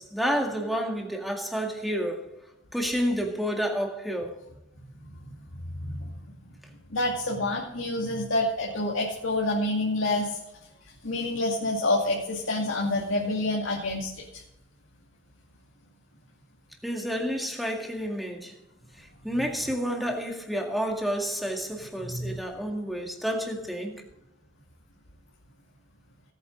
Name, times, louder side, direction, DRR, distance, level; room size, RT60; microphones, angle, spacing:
voice 1, 0.0-2.3 2.7-4.4 16.8-18.5 18.9-24.1, equal, ahead, 2.0 m, -30 dB
voice 2, 5.8-6.1 6.9-10.4 11.0-14.4 22.0-22.4, left 2 dB, 90° left, 2.4 m, -28 dB
18.0 x 9.0 x 4.0 m
head